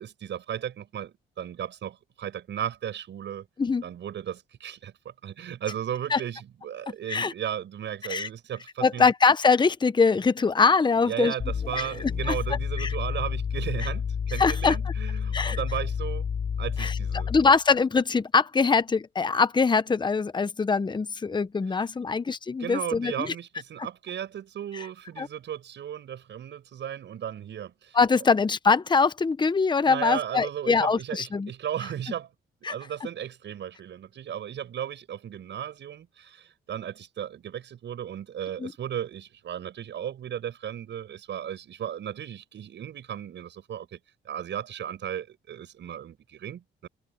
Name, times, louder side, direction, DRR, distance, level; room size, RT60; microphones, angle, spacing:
voice 1, 0.0-3.5 3.8-9.1 10.9-16.3 16.6-17.3 22.0-22.1 22.6-28.0 29.8-32.3 32.6-44.0 44.2-46.9, right 9 dB, 65° right, 7.3 m, -35 dB
voice 2, 8.8-11.3 11.7-12.3 12.8-12.9 14.4-14.8 15.3-15.6 16.8-17.0 17.3-23.3 24.7-24.9 25.2-25.3 27.9-31.5 32.6-32.7 38.6-38.7, left 4 dB, 20° left, 0.9 m, -23 dB
sound 1, 11.4-17.6, left 6 dB, 50° left, 5.1 m, -30 dB
cardioid pair, 90°, 20 cm